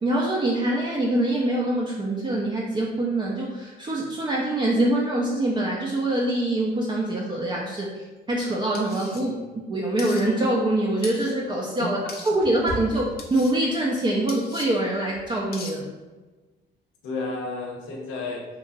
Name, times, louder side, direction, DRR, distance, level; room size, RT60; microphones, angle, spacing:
voice 1, 0.0-9.3 9.7-12.0 12.2-13.0 13.3-15.9, right 1 dB, 25° right, -3 dB, 0.4 m, -24 dB
sound 1, 8.7-9.2 10.0-10.2 11.0-11.3 12.1-12.3 13.2-13.5 14.3-14.7 15.5-15.7, left 4 dB, 50° left, 0.5 m, -39 dB
voice 2, 9.1-9.6 11.8-11.9 12.3-12.4 17.0-18.5, left 3 dB, 90° left, 0 dB, 0.7 m, -33 dB
sound 2, 10.5-13.9 14.3-14.5 15.1-15.4, right 1 dB, 55° right, 0.7 m, -39 dB
2.9 x 2.5 x 2.5 m, 1.2 s
cardioid pair, 90°, 20 cm